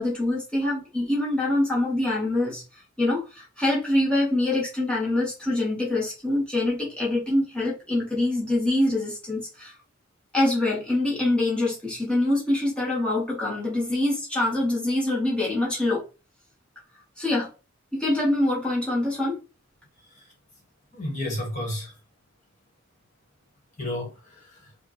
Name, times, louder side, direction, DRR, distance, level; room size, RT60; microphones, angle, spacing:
voice 1, 0.0-9.7 10.3-16.0 17.2-17.5 17.9-19.4, left 1 dB, 5° left, 1.5 m, -25 dB
voice 2, 20.9-21.9 23.8-24.7, left 1 dB, 40° left, 1.5 m, -32 dB
4.8 x 2.5 x 3.2 m
head